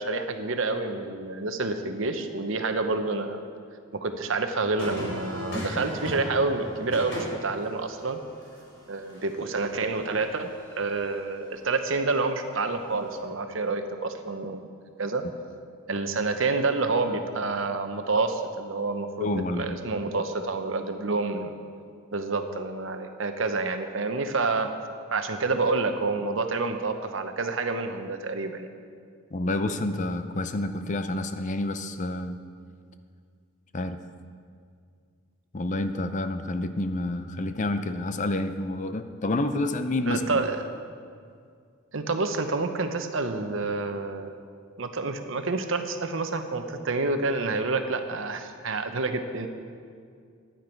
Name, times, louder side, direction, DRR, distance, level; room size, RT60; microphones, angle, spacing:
voice 1, 0.0-3.4 3.9-8.2 8.9-10.5 10.7-14.7 15.0-15.2 15.9-21.5 22.1-24.7 25.1-28.7 40.1-40.6 41.9-44.3 44.8-49.5, right 3 dB, 65° right, 7 dB, 0.9 m, -28 dB
sound 1, 4.8-11.1 12.9-13.2, equal, 60° left, 3.7 m, -38 dB
voice 2, 19.2-19.8 29.3-32.4 33.7-34.0 35.5-40.4, left 2 dB, 35° left, 9 dB, 0.5 m, -29 dB
15.0 x 10.5 x 4.5 m, 2.2 s
head